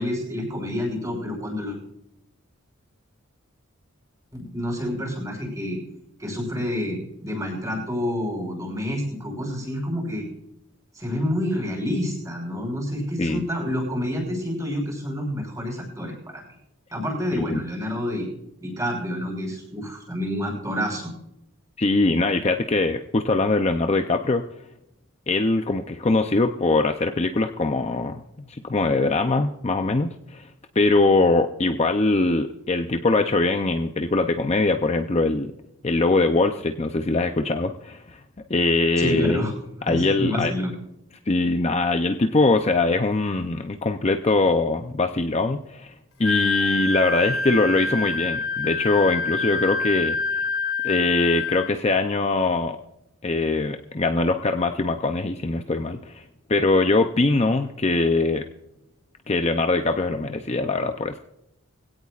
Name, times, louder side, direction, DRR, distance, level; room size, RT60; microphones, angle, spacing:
voice 1, 0.0-1.8 4.3-5.8 6.2-10.2 10.9-16.4 16.9-18.3 18.6-21.1 39.0-39.5 39.8-40.7, left 1 dB, 15° right, -1 dB, 5.4 m, -28 dB
voice 2, 21.8-24.4 25.3-30.5 30.8-35.5 35.8-38.2 38.5-39.4 39.9-40.5 41.3-45.9 46.2-50.4 50.8-52.8 53.2-56.2 56.5-58.4 59.3-61.2, left 3 dB, 30° left, 6 dB, 0.5 m, -22 dB
Wind instrument woodwind instrument, 46.2-51.7, left 3 dB, 85° left, 2.3 m, -26 dB
22.0 x 16.5 x 2.5 m, 0.83 s
head